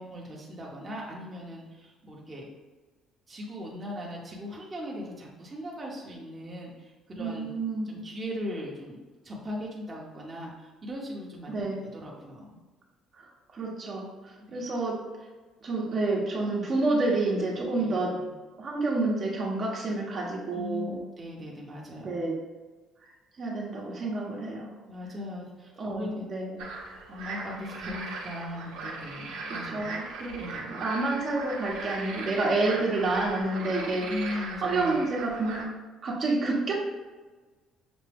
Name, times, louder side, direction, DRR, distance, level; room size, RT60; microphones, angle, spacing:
voice 1, 0.0-2.5 3.3-7.5 7.9-11.7 11.9-12.6 14.5-14.6 17.8-18.3 20.5-22.2 24.9-26.3 26.6-26.7 27.1-29.9 30.4-30.7 34.1-34.9, left 1 dB, 20° right, -3 dB, 0.9 m, -39 dB
voice 2, 7.2-7.9 11.5-11.8 13.2-13.3 13.5-15.0 15.6-18.1 18.6-21.0 22.0-22.3 23.4-24.7 25.8-26.6 29.5-35.7 36.0-36.7, right 2 dB, 45° right, -2 dB, 1.0 m, -29 dB
sound 1, 26.6-35.6, right 3 dB, 85° right, 0.8 m, -39 dB
6.0 x 2.2 x 3.4 m, 1.3 s
cardioid pair, 95°, 0 cm